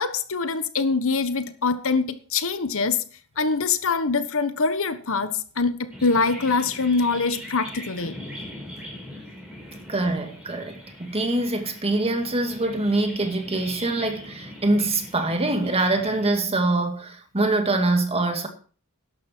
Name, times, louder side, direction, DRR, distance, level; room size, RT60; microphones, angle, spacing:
voice 1, 0.0-3.0 3.4-8.1, left 4 dB, 65° left, 1.3 m, -24 dB
sound 1, 5.9-16.3, equal, 5° right, 5.5 m, -41 dB
voice 2, 9.9-18.5, right 2 dB, 25° right, 2.2 m, -24 dB
13.0 x 11.5 x 4.6 m
head